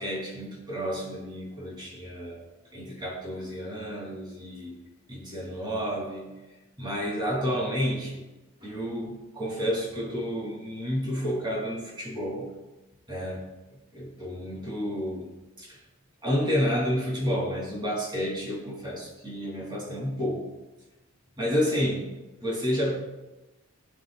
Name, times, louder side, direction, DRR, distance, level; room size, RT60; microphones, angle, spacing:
voice 1, 0.0-2.5 2.7-4.8 5.1-6.3 6.8-8.3 8.6-12.5 13.1-13.5 13.9-15.3 15.6-15.8 16.2-20.5 21.4-22.1 22.4-22.9, equal, 20° right, -4 dB, 3.2 m, -30 dB
19.5 x 7.4 x 2.4 m, 1.1 s
head